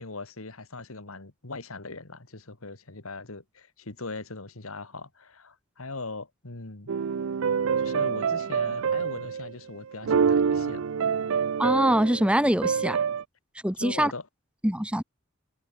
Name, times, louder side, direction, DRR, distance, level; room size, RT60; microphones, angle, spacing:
voice 1, 0.0-6.9 7.8-10.8 13.8-14.3, left 3 dB, 80° left, 2.3 m, -40 dB
sound 1, 6.9-9.5 9.9-13.2, right 6 dB, 70° right, 0.5 m, -26 dB
voice 2, 11.6-13.0 13.6-14.1 14.6-15.0, right 1 dB, 5° right, 1.2 m, -23 dB
head